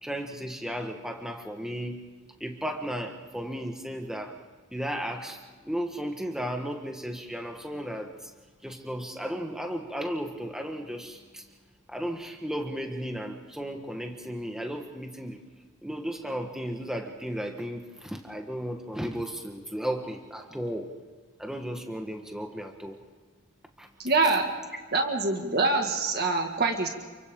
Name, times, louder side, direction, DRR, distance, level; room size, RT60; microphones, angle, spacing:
voice 1, 0.0-2.0 2.4-4.3 4.7-8.3 8.6-11.5 11.9-15.4 15.8-20.9 21.4-23.0 23.8-23.9, equal, ahead, 3 dB, 1.4 m, -34 dB
voice 2, 24.0-24.5 24.9-26.9, right 3 dB, 45° right, 3 dB, 1.9 m, -25 dB
29.0 x 24.0 x 3.8 m, 1.4 s
head